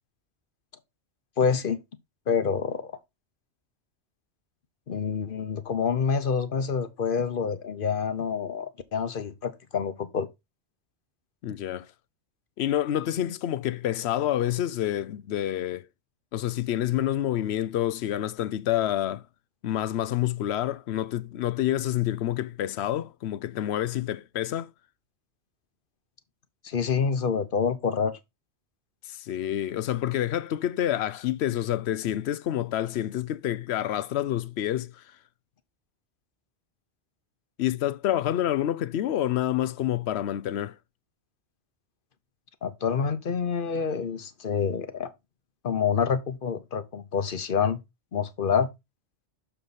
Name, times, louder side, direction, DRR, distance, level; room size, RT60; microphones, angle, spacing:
voice 1, 1.4-1.8 2.3-2.9 4.9-10.3 26.6-28.2 42.6-45.1 45.6-47.8 48.1-48.7, left 6 dB, 55° left, 1.0 m, -27 dB
voice 2, 11.4-11.9 12.6-15.9 16.3-19.2 19.6-24.7 29.1-35.0 37.6-40.8, left 12 dB, 75° left, 0.8 m, -28 dB
6.6 x 5.6 x 4.1 m
omnidirectional pair, 1.1 m